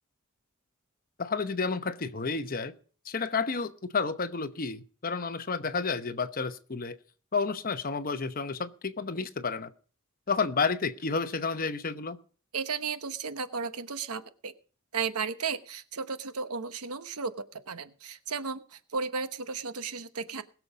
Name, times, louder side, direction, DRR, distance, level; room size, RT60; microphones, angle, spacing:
voice 1, 1.2-2.7 3.1-7.0 7.3-9.7 10.3-12.2, left 4 dB, 40° left, 11 dB, 0.9 m, -31 dB
voice 2, 12.5-14.5 14.9-20.4, right 5 dB, 85° right, 11 dB, 1.1 m, -34 dB
20.5 x 7.0 x 5.0 m, 0.41 s
head